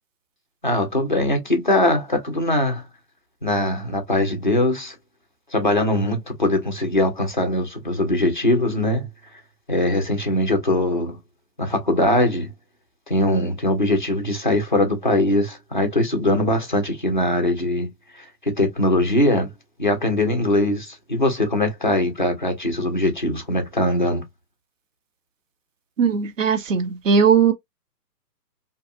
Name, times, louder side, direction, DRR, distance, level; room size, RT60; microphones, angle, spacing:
voice 1, 0.6-2.8 3.4-5.0 5.5-9.1 9.7-11.2 11.6-12.5 13.1-19.5 19.8-24.3, left 1 dB, 35° left, 0.4 m, -21 dB
voice 2, 26.0-27.5, right 6 dB, 50° right, 0.6 m, -18 dB
2.6 x 2.4 x 2.3 m
figure-of-eight pair, 135°, 49 cm